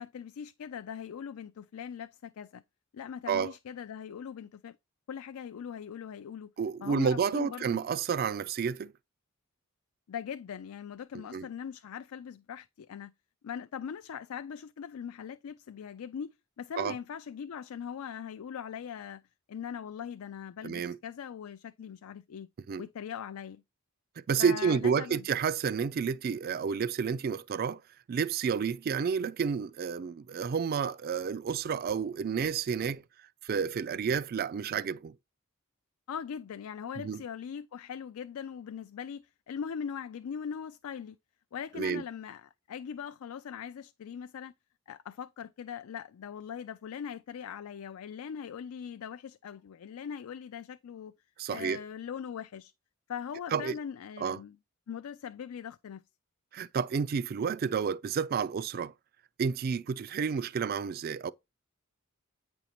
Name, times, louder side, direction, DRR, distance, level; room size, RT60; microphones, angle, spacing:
voice 1, 0.0-2.6 2.9-4.8 5.1-6.5 6.8-7.8 10.1-13.1 13.4-19.2 19.5-22.5 22.8-23.6 24.4-25.3 36.1-41.2 41.5-44.5 44.9-51.1 51.5-52.7 53.1-54.6 54.9-56.0, left 7 dB, 80° left, 0.4 m, -41 dB
voice 2, 6.6-8.9 11.3-11.5 16.8-17.0 20.6-21.0 22.7-22.8 24.2-27.8 28.1-33.0 33.4-35.2 37.0-37.2 41.8-42.0 51.4-51.8 53.5-53.8 54.2-54.4 56.5-58.9 59.4-61.3, right 6 dB, 45° right, 0.3 m, -30 dB
9.0 x 5.2 x 2.9 m
head